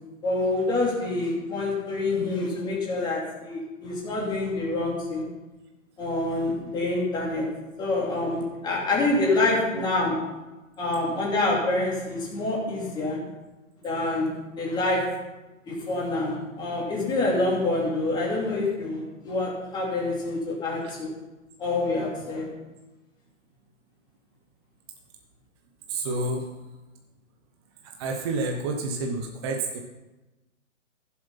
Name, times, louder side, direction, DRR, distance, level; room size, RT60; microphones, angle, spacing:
voice 1, 0.2-5.2 6.0-7.5 7.8-10.1 10.8-13.2 13.8-14.3 14.6-15.0 15.7-21.1 21.6-22.5, left 2 dB, 10° left, -4 dB, 2.9 m, -26 dB
voice 2, 25.9-26.5 28.0-29.8, right 2 dB, 20° right, 3 dB, 0.8 m, -29 dB
15.0 x 7.5 x 5.7 m, 1.1 s
hypercardioid pair, 160°, 40 cm